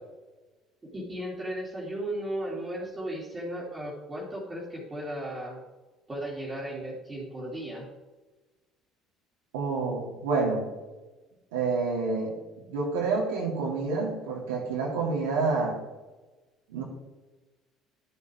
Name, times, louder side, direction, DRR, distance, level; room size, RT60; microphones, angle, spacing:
voice 1, 0.9-5.6 6.1-7.8, right 1 dB, 25° right, -7 dB, 3.0 m, -35 dB
voice 2, 9.5-10.7 11.5-12.3 12.7-15.8 16.7-16.8, right 4 dB, 80° right, -3 dB, 2.5 m, -28 dB
12.0 x 6.8 x 3.5 m, 1.2 s
hypercardioid pair, 65°, 0 cm